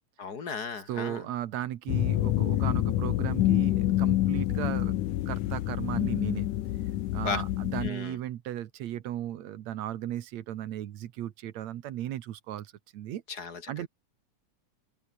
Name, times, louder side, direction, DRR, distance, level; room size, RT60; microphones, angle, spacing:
voice 1, 0.2-1.3 7.2-7.4 7.8-8.2 13.3-13.9, left 5 dB, 35° left, 2.0 m, -35 dB
voice 2, 0.9-5.0 5.3-6.5 7.1-13.2 13.7-13.9, right 12 dB, 70° right, 2.3 m, -36 dB
sound 1, 1.9-7.9, left 14 dB, 90° left, 2.5 m, -27 dB
omnidirectional pair, 3.5 m